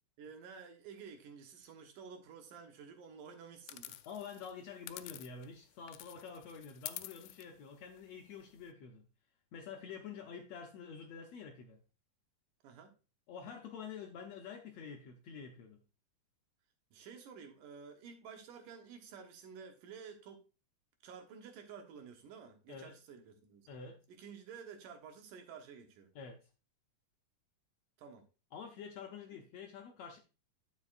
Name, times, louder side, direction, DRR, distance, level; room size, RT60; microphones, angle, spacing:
voice 1, 0.2-4.0 12.6-12.9 16.9-20.4 21.0-23.7 24.1-26.1 28.0-28.2, right 6 dB, 80° right, 2.8 m, -51 dB
sound 1, 3.7-5.6 5.9-8.7, left 15 dB, 90° left, 2.2 m, -49 dB
voice 2, 4.0-9.1 9.5-11.8 13.3-15.8 22.7-22.9 23.7-24.0 26.2-26.4 28.5-30.2, left 6 dB, 70° left, 1.6 m, -48 dB
10.5 x 6.9 x 2.5 m
omnidirectional pair, 3.8 m